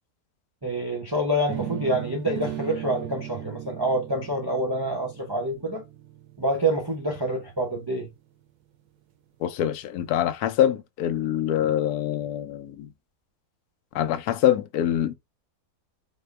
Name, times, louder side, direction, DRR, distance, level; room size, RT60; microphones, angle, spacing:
voice 1, 0.6-5.8 6.4-8.1, right 1 dB, 30° right, 0.5 m, -27 dB
sound 1, 1.5-7.4, right 13 dB, 80° right, 1.2 m, -37 dB
voice 2, 9.4-12.9 13.9-15.1, left 11 dB, 80° left, 1.1 m, -24 dB
4.2 x 2.2 x 3.2 m
omnidirectional pair, 1.6 m